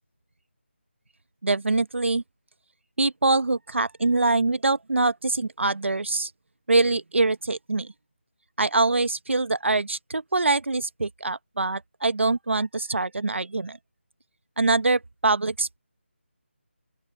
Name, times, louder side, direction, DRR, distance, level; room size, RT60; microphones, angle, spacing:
voice 1, 1.4-2.2 3.0-6.3 6.7-7.9 8.6-13.8 14.6-15.8, right 3 dB, 75° right, 1.2 m, -24 dB
open air
figure-of-eight pair, 165°, 7 cm